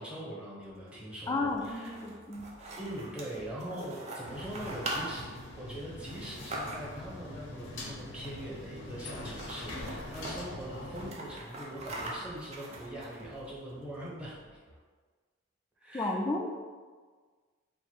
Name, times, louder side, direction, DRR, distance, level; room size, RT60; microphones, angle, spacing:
voice 1, 0.0-2.0 2.8-14.6 15.8-16.2, right 1 dB, 5° right, -7 dB, 0.9 m, -42 dB
sound 1, 0.6-14.8, right 1 dB, 80° right, 0.7 m, -57 dB
voice 2, 1.3-2.5 15.9-16.5, left 2 dB, 15° left, 2 dB, 0.3 m, -32 dB
sound 2, 1.5-7.1 8.1-8.6 8.9-9.0 9.2-10.3 10.7-13.4, right 2 dB, 35° right, 0.6 m, -42 dB
sound 3, 4.2-11.1, left 2 dB, 70° left, 0.8 m, -43 dB
4.5 x 2.1 x 4.4 m, 1.5 s
head